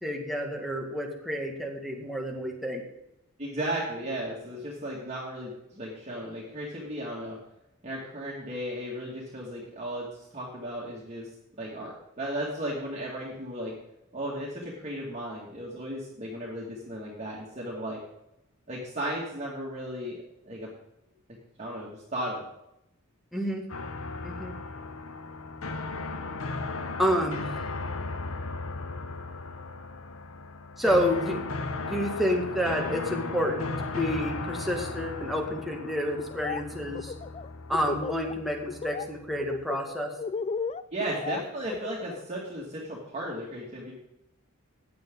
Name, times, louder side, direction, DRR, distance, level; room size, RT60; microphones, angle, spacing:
voice 1, 0.0-2.8 23.3-23.7 24.2-24.5 27.0-27.5 30.8-31.4 31.8-37.1 37.7-40.1, equal, ahead, 0 dB, 2.0 m, -29 dB
voice 2, 3.4-7.4 7.8-13.7 14.1-18.0 18.7-20.2 20.5-20.7 21.6-22.4 40.9-43.9, right 1 dB, 30° right, -5 dB, 2.3 m, -35 dB
sound 1, 23.7-39.6, left 3 dB, 70° left, 1.0 m, -36 dB
Laughter, 36.2-36.6 36.9-38.3 38.7-39.0 39.4-42.2, left 5 dB, 30° left, 0.4 m, -34 dB
15.5 x 9.7 x 3.9 m, 0.84 s
head